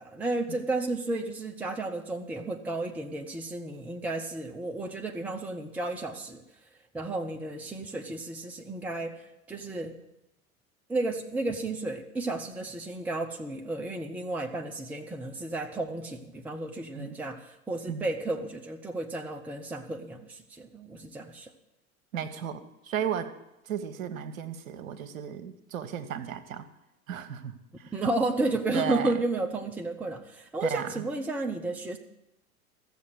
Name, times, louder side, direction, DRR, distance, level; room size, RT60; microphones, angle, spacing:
voice 1, 0.0-6.4 6.9-10.0 10.9-21.5 27.9-32.0, right 2 dB, 5° right, 4 dB, 0.6 m, -32 dB
voice 2, 22.1-23.3 23.7-26.7 27.1-27.9 28.7-29.1 30.6-31.0, right 8 dB, 60° right, 10 dB, 1.2 m, -34 dB
15.0 x 7.0 x 7.9 m, 0.90 s
figure-of-eight pair, 90°, 45 cm